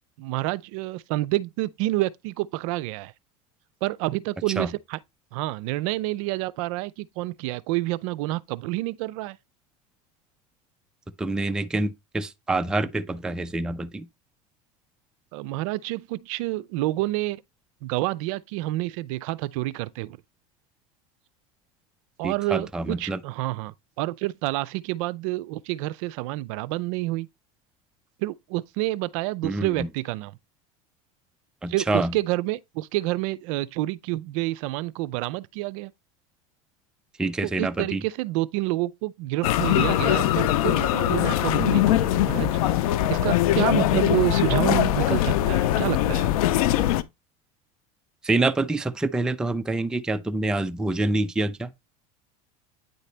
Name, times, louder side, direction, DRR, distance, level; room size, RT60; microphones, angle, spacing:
voice 1, 0.2-3.1 3.8-5.0 5.3-9.4 15.3-17.4 17.8-20.2 22.2-27.3 28.2-30.3 31.7-35.9 37.6-46.3, right 18 dB, 70° right, 0.5 m, -28 dB
voice 2, 11.2-14.1 22.2-23.2 29.4-29.9 31.6-32.2 37.2-38.0 48.2-51.7, right 2 dB, 5° right, 0.3 m, -26 dB
sound 1, 39.4-47.0, left 13 dB, 85° left, 0.6 m, -22 dB
9.1 x 4.0 x 3.3 m
supercardioid pair, 135°, 18 cm